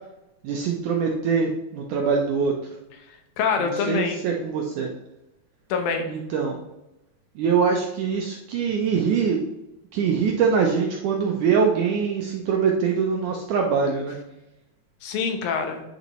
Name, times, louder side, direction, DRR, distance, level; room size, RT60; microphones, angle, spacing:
voice 1, 0.4-2.5 3.6-4.9 6.1-6.6 7.4-9.4 9.9-14.2, right 6 dB, 80° right, 1 dB, 1.8 m, -23 dB
voice 2, 3.1-4.2 5.7-6.1 15.0-15.8, left 5 dB, 75° left, 5 dB, 2.6 m, -26 dB
8.9 x 6.9 x 3.0 m, 0.92 s
omnidirectional pair, 4.4 m